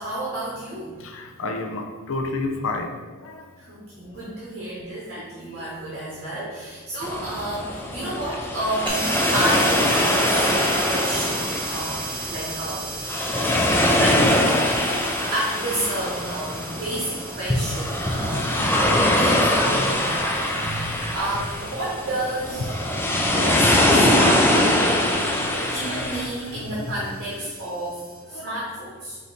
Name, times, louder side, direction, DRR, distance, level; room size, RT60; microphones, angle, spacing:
voice 1, 0.0-1.1 3.6-13.2 13.7-14.7 15.3-22.7 23.2-24.6 25.7-29.2, right 1 dB, 50° right, -6 dB, 0.9 m, -31 dB
voice 2, 1.0-3.5 5.2-5.7 6.0-6.4 8.0-8.2 8.5-8.6 11.8-11.9 12.3-12.4 20.1-20.2 22.6-23.6 24.0-24.2 25.0-26.9 28.3-28.6, left 2 dB, 65° left, 4 dB, 0.5 m, -33 dB
sound 1, 7.0-26.3, left 1 dB, 10° left, 0.4 m, -22 dB
sound 2, 8.9-28.2, right 3 dB, 25° right, 0.9 m, -37 dB
4.8 x 2.7 x 4.1 m, 1.4 s
head